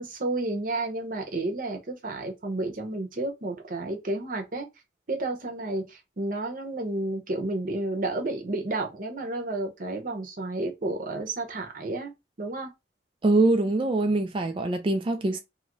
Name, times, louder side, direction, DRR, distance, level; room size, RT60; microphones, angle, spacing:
voice 1, 0.0-4.7 5.1-12.1 12.4-12.7, right 2 dB, 50° right, 0.8 m, -31 dB
voice 2, 13.2-15.4, right 2 dB, 30° right, 0.3 m, -23 dB
2.8 x 2.5 x 3.0 m
head